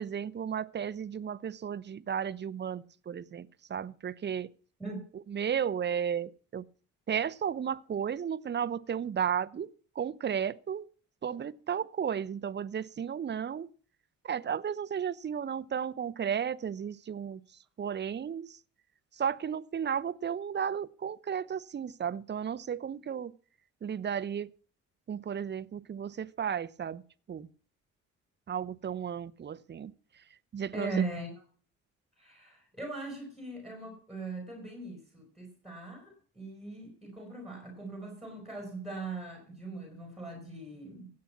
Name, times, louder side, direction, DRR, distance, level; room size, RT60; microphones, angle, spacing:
voice 1, 0.0-4.5 5.3-6.6 7.1-9.7 10.0-10.9 11.2-13.7 14.2-17.4 17.8-18.5 19.2-23.3 23.8-24.5 25.1-27.0 27.3-27.5 28.5-29.9 30.5-30.9, right 8 dB, 35° right, 0.7 m, -34 dB
voice 2, 30.7-31.4 32.2-41.1, right 3 dB, ahead, 5.2 m, -40 dB
16.5 x 8.7 x 5.9 m
cardioid pair, 90°, 30 cm